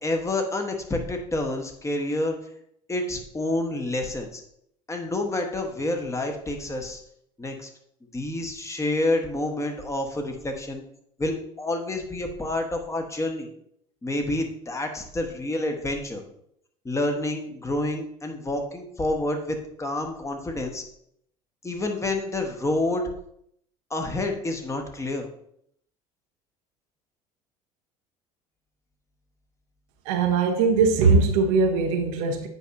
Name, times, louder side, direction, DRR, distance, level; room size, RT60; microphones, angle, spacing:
voice 1, 0.0-2.3 2.9-4.4 4.9-7.0 7.4-7.7 8.1-10.8 11.2-13.5 14.0-16.2 16.8-20.8 21.6-23.0 23.9-25.3, left 2 dB, 15° left, 1.2 m, -28 dB
voice 2, 30.1-32.5, right 4 dB, 55° right, 0.8 m, -20 dB
8.1 x 5.5 x 2.6 m
figure-of-eight pair, 65°, 19 cm